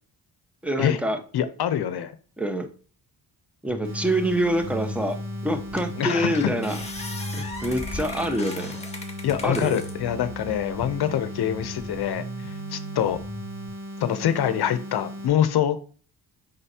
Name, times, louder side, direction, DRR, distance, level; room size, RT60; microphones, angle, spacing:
voice 1, 0.6-1.2 2.4-2.7 3.6-5.2 5.4-6.8 7.3-8.8 9.4-9.8, right 1 dB, 5° right, 1.2 m, -26 dB
voice 2, 1.3-2.2 6.0-6.5 9.2-13.2 14.0-15.8, left 10 dB, 70° left, 0.8 m, -25 dB
sound 1, 3.7-13.7, equal, 45° right, 3.5 m, -38 dB
sound 2, 3.8-15.3, equal, 60° right, 2.1 m, -38 dB
sound 3, 5.1-5.2 5.8-6.0 6.3-9.9 10.5-11.1, left 3 dB, 15° left, 1.7 m, -38 dB
6.6 x 5.6 x 2.8 m
cardioid pair, 80°, 40 cm